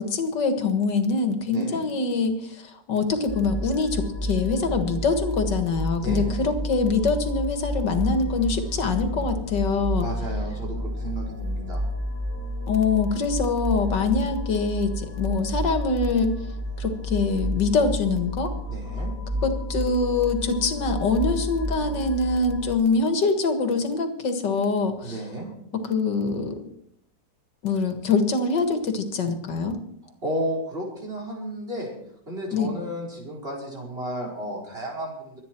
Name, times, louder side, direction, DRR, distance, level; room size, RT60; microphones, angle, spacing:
voice 1, 0.0-2.6 2.9-10.1 12.7-16.4 16.8-18.5 19.4-25.2 25.9-26.6 27.6-29.8 32.5-32.7, left 4 dB, 80° left, 7 dB, 2.4 m, -24 dB
voice 2, 1.5-1.8 6.0-6.5 10.0-11.9 18.7-19.1 25.0-25.5 30.0-31.9 32.3-35.4, right 1 dB, 35° right, -2 dB, 4.8 m, -33 dB
sound 1, 3.3-22.7, equal, 10° left, 1.0 m, -30 dB
24.5 x 9.4 x 4.6 m, 0.72 s
omnidirectional pair, 1.9 m